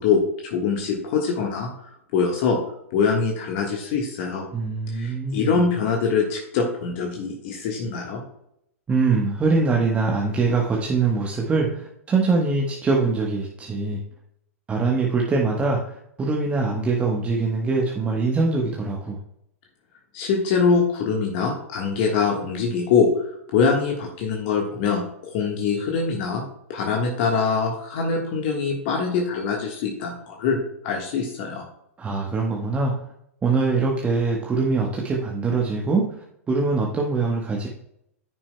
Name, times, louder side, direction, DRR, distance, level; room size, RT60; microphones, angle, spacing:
voice 1, 0.0-2.6 2.9-4.4 4.9-8.2 20.1-23.3 23.5-26.4 26.7-30.6 30.8-31.6, left 5 dB, 45° left, 1 dB, 1.4 m, -23 dB
voice 2, 4.5-5.6 8.9-14.0 14.7-19.2 32.0-32.9 33.4-37.7, right 4 dB, 15° right, -1 dB, 1.1 m, -23 dB
14.0 x 5.9 x 2.2 m, 0.77 s
figure-of-eight pair, 100°, 8 cm